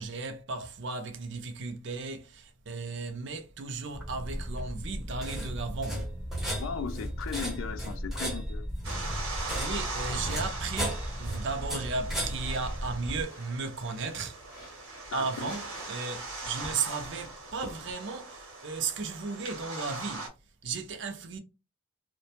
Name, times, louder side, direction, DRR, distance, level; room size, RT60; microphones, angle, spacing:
voice 1, 0.0-6.1 9.2-14.4 14.7-14.8 15.1-20.3 20.6-21.4, right 4 dB, 55° right, 0.5 m, -35 dB
sound 1, 3.9-13.2, equal, ahead, 0.7 m, -35 dB
voice 2, 6.5-8.7 15.1-15.5, left 6 dB, 65° left, 0.3 m, -37 dB
sound 2, 8.8-20.3, right 3 dB, 75° right, 0.9 m, -41 dB
sound 3, 12.3-17.9, left 1 dB, 40° left, 0.7 m, -50 dB
2.5 x 2.1 x 2.8 m
head